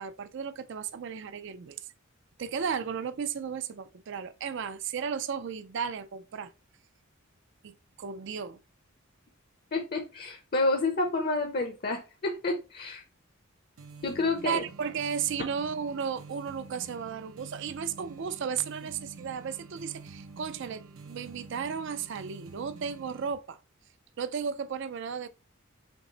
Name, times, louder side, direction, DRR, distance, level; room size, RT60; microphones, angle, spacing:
voice 1, 0.0-1.8 2.4-6.5 7.6-8.6 14.4-23.6 24.2-25.3, right 7 dB, 55° right, 0.4 m, -34 dB
voice 2, 9.7-13.0 14.0-14.6, left 2 dB, 45° left, 0.7 m, -29 dB
sound 1, 13.8-23.4, right 4 dB, 85° right, 0.7 m, -48 dB
5.9 x 2.0 x 3.8 m
head